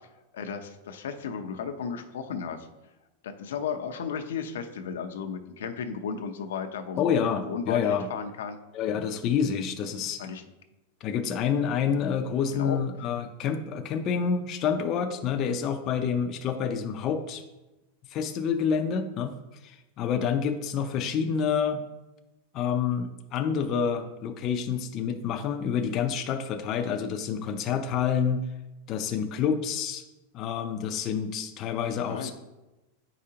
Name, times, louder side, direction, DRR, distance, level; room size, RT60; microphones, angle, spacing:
voice 1, 0.3-2.7 3.2-8.6 10.2-10.4 12.5-12.8 32.0-32.3, left 6 dB, 85° left, 7 dB, 0.6 m, -34 dB
voice 2, 7.0-8.1 8.7-10.2 11.0-17.4 18.1-19.3 19.6-21.8 22.5-28.4 28.9-30.0 30.3-32.3, left 7 dB, 35° left, 6 dB, 0.5 m, -28 dB
8.5 x 5.0 x 2.8 m, 1.0 s
supercardioid pair, 145°, 0 cm